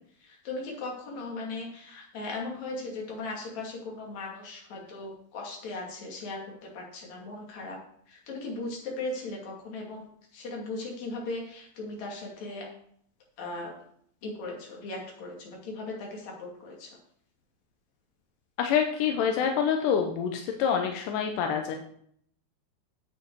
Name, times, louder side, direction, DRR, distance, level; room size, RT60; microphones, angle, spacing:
voice 1, 0.2-7.8 8.1-12.7 13.4-13.7 14.2-17.0, left 2 dB, 50° left, -1 dB, 3.3 m, -38 dB
voice 2, 18.6-21.8, left 7 dB, 75° left, 4 dB, 2.0 m, -26 dB
9.5 x 8.4 x 4.6 m, 0.66 s
omnidirectional pair, 4.6 m